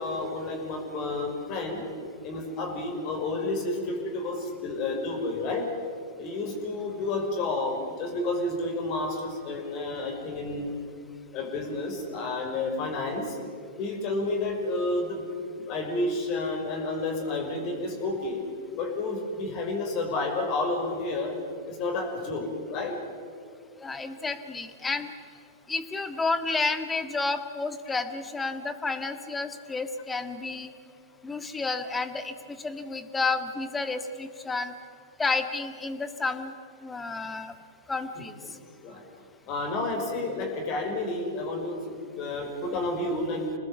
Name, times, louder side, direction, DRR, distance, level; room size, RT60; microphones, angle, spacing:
voice 1, 0.0-1.8 2.2-5.7 6.2-10.7 11.3-13.4 13.8-15.3 15.5-18.4 18.8-21.4 21.7-23.0 26.5-26.6 38.2-38.3 38.8-39.0 39.5-43.5, left 2 dB, 45° left, 3 dB, 5.7 m, -30 dB
voice 2, 23.8-25.1 25.7-30.7 31.2-34.7 35.2-36.5 36.8-37.5 37.9-38.3, left 3 dB, 15° left, 9 dB, 1.6 m, -31 dB
26.0 x 19.5 x 8.2 m, 2.3 s
hypercardioid pair, 105°, 0 cm